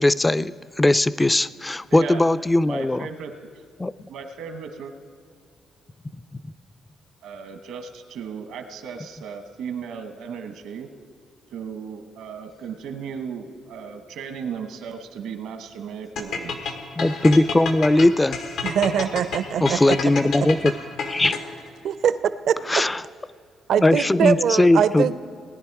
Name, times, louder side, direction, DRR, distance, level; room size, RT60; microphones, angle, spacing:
voice 1, 0.0-3.1 3.8-4.1 6.3-6.4 17.0-18.4 19.6-20.7 21.1-21.3 22.7-23.0 23.8-25.2, left 2 dB, 15° left, 16 dB, 0.3 m, -19 dB
voice 2, 1.9-2.3 2.6-3.3 4.1-4.9 7.2-10.9 11.5-16.8, right 6 dB, 85° right, 7 dB, 1.1 m, -36 dB
sound 1, 16.2-21.7, left 5 dB, 85° left, 1.4 m, -30 dB
voice 3, 18.6-20.0 20.4-20.5 21.8-22.2 22.5-22.6 23.7-25.2, right 8 dB, 70° right, 13 dB, 0.5 m, -22 dB
18.5 x 10.5 x 4.7 m, 2.2 s
cardioid pair, 90°, 0 cm